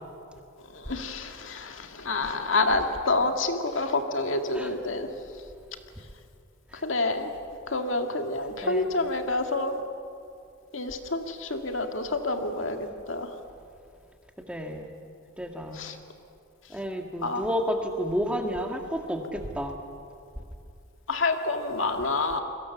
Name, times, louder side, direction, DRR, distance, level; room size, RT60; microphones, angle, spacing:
voice 1, 0.7-5.1 6.7-7.4 7.7-9.8 10.7-13.3 15.7-16.0 17.2-17.4 21.1-22.4, left 2 dB, 70° left, 5 dB, 2.0 m, -28 dB
voice 2, 14.5-14.9 15.4-15.8 16.7-19.7, equal, 5° right, 3 dB, 1.8 m, -31 dB
29.0 x 22.5 x 7.1 m, 2.5 s
head